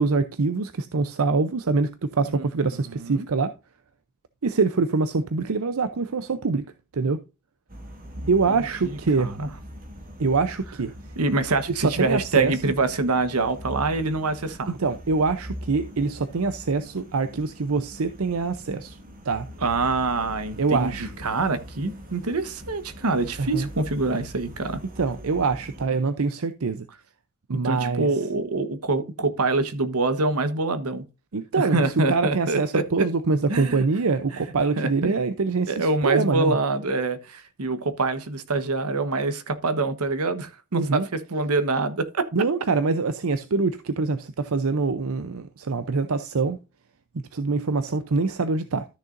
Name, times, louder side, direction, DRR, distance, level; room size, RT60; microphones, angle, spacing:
voice 1, 0.0-3.5 4.4-6.6 6.9-7.2 8.3-9.3 10.2-10.9 11.7-12.5 14.7-19.0 19.3-19.5 20.6-21.1 23.4-23.7 25.0-26.9 27.5-28.1 31.3-36.6 40.7-41.1 42.3-46.6 47.1-48.9, right 4 dB, 75° right, 0.6 m, -24 dB
voice 2, 2.3-3.3 8.2-9.5 11.2-14.7 19.6-24.8 27.5-31.0 31.6-33.1 33.5-33.8 34.3-34.4 34.8-35.1 35.7-42.3, right 3 dB, 90° right, 1.2 m, -25 dB
sound 1, 7.7-25.9, equal, 40° right, 1.8 m, -42 dB
13.0 x 6.7 x 2.5 m
head